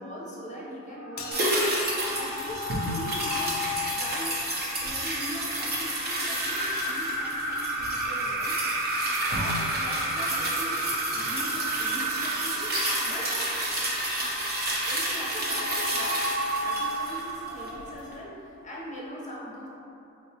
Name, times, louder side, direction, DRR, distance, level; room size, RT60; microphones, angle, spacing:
voice 1, 0.0-1.8 2.2-3.6 3.9-4.3 4.8-8.7 9.3-10.8 11.1-13.4 14.9-16.2 16.5-19.7, equal, 25° left, -6 dB, 0.8 m, -40 dB
sound 1, 0.9-18.2, right 1 dB, 80° right, 0.6 m, -33 dB
sound 2, 1.2-2.2, left 4 dB, 70° left, 0.5 m, -38 dB
sound 3, 1.3-17.8 18.1-18.2, right 1 dB, 35° right, 0.7 m, -31 dB
4.0 x 2.4 x 2.9 m, 2.8 s
cardioid pair, 110°, 29 cm